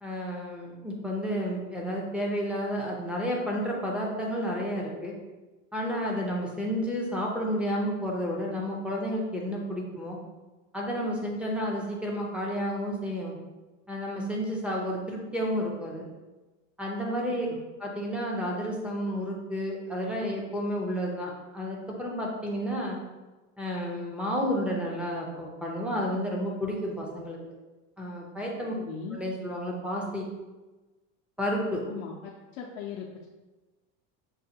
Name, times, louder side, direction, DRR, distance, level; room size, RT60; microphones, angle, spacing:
voice 1, 0.0-5.2 5.7-10.2 10.7-13.4 13.9-16.1 16.8-17.5 17.8-23.0 23.6-27.4 28.0-28.7 29.1-30.3 31.4-31.8, equal, 5° right, -4 dB, 0.5 m, -31 dB
voice 2, 28.7-29.2 31.9-33.1, left 6 dB, 85° left, -3 dB, 0.6 m, -39 dB
5.4 x 2.2 x 2.8 m, 1.2 s
supercardioid pair, 130°, 37 cm